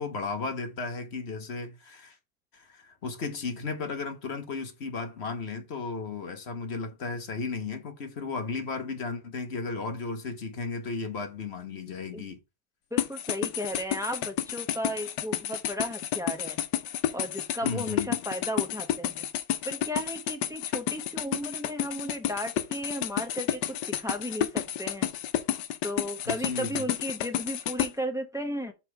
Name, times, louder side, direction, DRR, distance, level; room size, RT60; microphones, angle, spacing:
voice 1, 0.0-2.2 2.5-12.4 17.6-18.2 26.3-26.9, left 4 dB, 45° left, 1.0 m, -35 dB
voice 2, 12.9-16.6 17.1-19.3 19.6-25.1 25.8-28.7, equal, 5° right, 0.7 m, -35 dB
sound 1, 13.0-27.9, left 11 dB, 70° left, 1.3 m, -30 dB
6.6 x 4.2 x 4.6 m
omnidirectional pair, 2.0 m